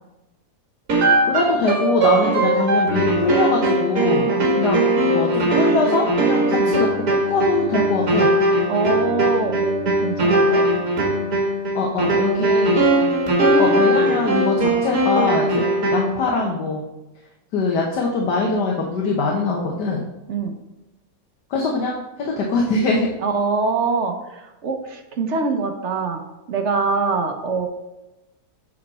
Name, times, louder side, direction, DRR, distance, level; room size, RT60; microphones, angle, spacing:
sound 1, 0.9-16.2, right 1 dB, 65° right, 2.0 m, -19 dB
voice 1, 1.3-4.3 4.6-4.8 5.1-8.3 11.7-12.8 13.6-15.5 15.9-16.8 17.5-20.1 21.5-23.1, left 3 dB, 85° left, -1 dB, 1.7 m, -22 dB
voice 2, 8.7-10.7 12.0-12.7 20.3-20.5 23.2-26.2 26.5-27.7, right 4 dB, 50° right, 5 dB, 1.1 m, -24 dB
7.2 x 6.3 x 4.2 m, 1.0 s
omnidirectional pair, 1.7 m